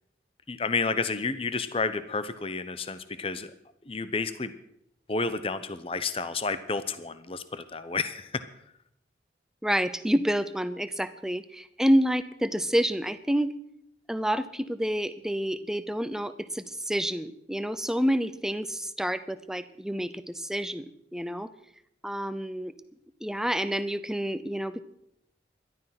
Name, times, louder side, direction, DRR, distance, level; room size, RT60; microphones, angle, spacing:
voice 1, 0.5-3.5 3.8-4.5 5.1-8.4, left 4 dB, 30° left, 13 dB, 0.8 m, -30 dB
voice 2, 9.6-13.5 14.1-20.9 21.1-21.5 22.0-22.7 23.2-24.8, equal, 5° right, 12 dB, 0.7 m, -28 dB
17.5 x 12.5 x 5.9 m, 0.77 s
head